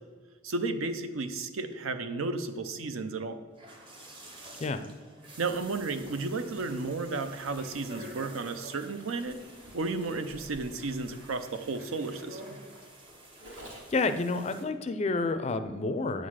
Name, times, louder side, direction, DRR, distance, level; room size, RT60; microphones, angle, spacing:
voice 1, 0.4-3.4 5.4-9.4 9.7-12.6, right 3 dB, 80° right, 9 dB, 0.6 m, -33 dB
sound 1, 3.5-14.6, right 2 dB, 25° right, 0.8 m, -52 dB
voice 2, 4.6-4.9 13.5-13.6 13.9-16.3, left 3 dB, 30° left, 10 dB, 0.4 m, -30 dB
Zipper (clothing), 5.4-14.1, equal, 65° right, 1.7 m, -54 dB
Speech, 7.2-13.0, left 1 dB, 40° right, 1.4 m, -49 dB
8.3 x 3.9 x 6.3 m, 1.5 s
head